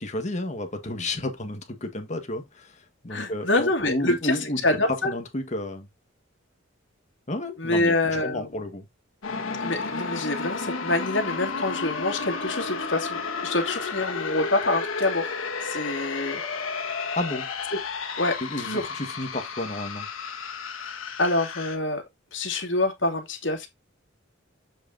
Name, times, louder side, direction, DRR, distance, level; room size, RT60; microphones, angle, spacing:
voice 1, 0.0-4.7 5.0-5.9 7.3-8.0 8.2-8.9 17.2-17.5 18.4-20.1, left 1 dB, 35° left, 1.7 m, -31 dB
voice 2, 3.1-5.1 7.6-8.5 9.6-15.3 15.6-16.4 18.2-18.9 20.8-22.0 22.3-23.7, left 2 dB, 65° left, 2.6 m, -26 dB
sound 1, 9.2-21.8, left 4 dB, 85° left, 1.6 m, -32 dB
7.7 x 6.2 x 2.8 m
head